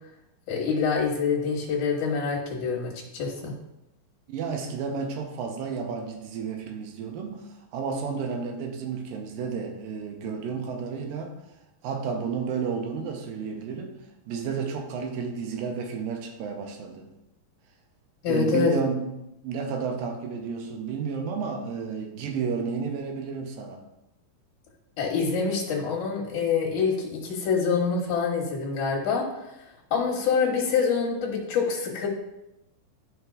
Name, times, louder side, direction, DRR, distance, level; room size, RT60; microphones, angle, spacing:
voice 1, 0.5-3.5 18.2-18.8 25.0-29.2 29.9-32.1, left 5 dB, 65° left, -3 dB, 2.4 m, -26 dB
voice 2, 4.3-11.4 11.8-14.0 14.3-17.1 18.3-23.8, right 5 dB, 80° right, 4 dB, 2.5 m, -32 dB
12.0 x 5.1 x 2.4 m, 0.91 s
omnidirectional pair, 4.2 m